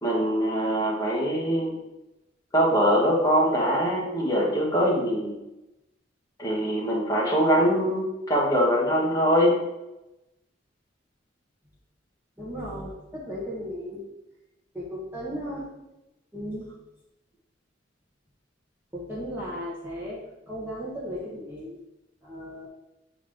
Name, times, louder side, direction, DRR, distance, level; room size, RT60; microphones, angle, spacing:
voice 1, 0.0-1.7 2.5-5.3 6.4-9.6, equal, 20° left, -4 dB, 1.6 m, -23 dB
voice 2, 12.4-14.0 14.7-15.7 16.3-16.7 18.9-20.2 20.5-21.8 22.2-22.7, equal, 10° right, -7 dB, 1.2 m, -35 dB
8.3 x 3.7 x 3.6 m, 0.94 s
head